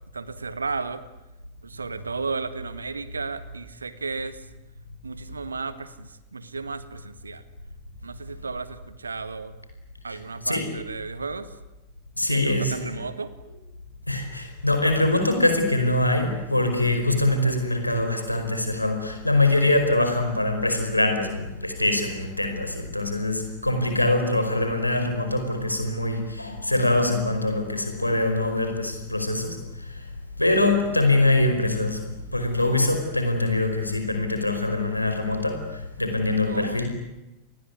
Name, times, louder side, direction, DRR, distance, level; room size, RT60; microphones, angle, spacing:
voice 1, 0.1-1.0 1.6-4.5 5.0-7.4 8.0-9.5 10.0-11.6 12.3-13.3 36.4-36.9, right 4 dB, 75° right, 13 dB, 1.9 m, -34 dB
voice 2, 12.2-13.0 14.1-30.0 30.4-32.0 32.3-36.9, left 2 dB, 85° left, 6 dB, 5.1 m, -23 dB
28.0 x 20.5 x 9.9 m, 1.0 s
figure-of-eight pair, 90°, 0 cm